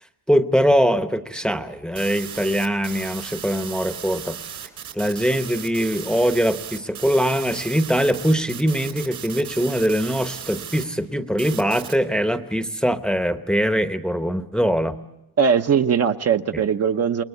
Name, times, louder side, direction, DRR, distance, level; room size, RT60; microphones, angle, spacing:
voice 1, 0.3-4.4 4.9-15.0, equal, ahead, 9 dB, 0.8 m, -22 dB
sound 1, 2.0-10.8 11.4-12.0, right 9 dB, 65° right, 3.9 m, -36 dB
voice 2, 15.4-17.2, right 7 dB, 45° right, 7 dB, 0.9 m, -20 dB
28.0 x 21.0 x 8.4 m, 0.94 s
cardioid pair, 140°, 36 cm